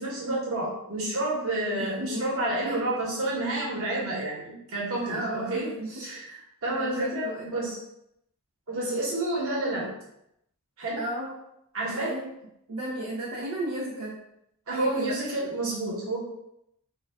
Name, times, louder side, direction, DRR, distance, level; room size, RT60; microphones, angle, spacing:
voice 1, 0.0-7.8 8.7-9.9 10.8-11.0 11.7-12.1 14.7-16.2, right 2 dB, 65° right, -5 dB, 1.0 m, -30 dB
voice 2, 1.8-2.3 2.6-2.9 5.0-6.0 6.7-7.4 8.7-9.0 11.0-11.3 11.9-12.3 12.7-14.2 14.7-15.2, right 1 dB, 90° right, -4 dB, 0.5 m, -34 dB
2.2 x 2.2 x 3.3 m, 0.79 s
head